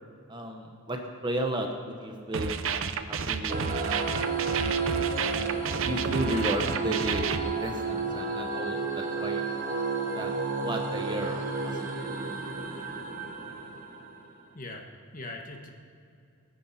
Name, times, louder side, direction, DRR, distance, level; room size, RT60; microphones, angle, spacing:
voice 1, 0.3-3.8 5.7-7.3 7.6-9.5 10.1-12.2, right 1 dB, 20° right, 3 dB, 1.0 m, -34 dB
sound 1, 2.3-7.4, right 6 dB, 60° right, 0.7 m, -31 dB
sound 2, 3.5-14.4, right 4 dB, 40° right, 1.4 m, -32 dB
voice 2, 14.5-14.8 15.1-15.7, left 2 dB, 35° left, 2 dB, 1.4 m, -40 dB
21.0 x 10.0 x 4.3 m, 2.4 s
head